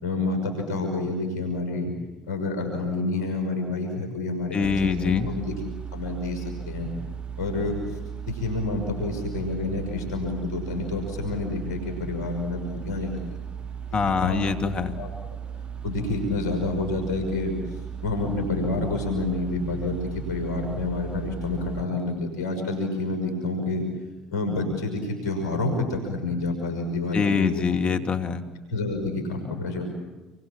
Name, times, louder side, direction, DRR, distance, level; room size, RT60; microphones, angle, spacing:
voice 1, 0.0-1.9 2.3-5.5 5.9-6.9 7.4-7.8 8.2-13.3 14.2-14.4 15.0-15.1 15.8-17.5 18.0-23.8 24.3-27.6 28.7-29.8, left 3 dB, 80° left, 3 dB, 5.7 m, -28 dB
voice 2, 4.5-5.3 13.9-15.0 27.1-28.4, left 5 dB, 40° left, 6 dB, 2.5 m, -24 dB
sound 1, 4.6-21.9, right 8 dB, 35° right, 1.0 m, -36 dB
28.0 x 24.0 x 7.3 m, 1.1 s
hypercardioid pair, 65°, 3 cm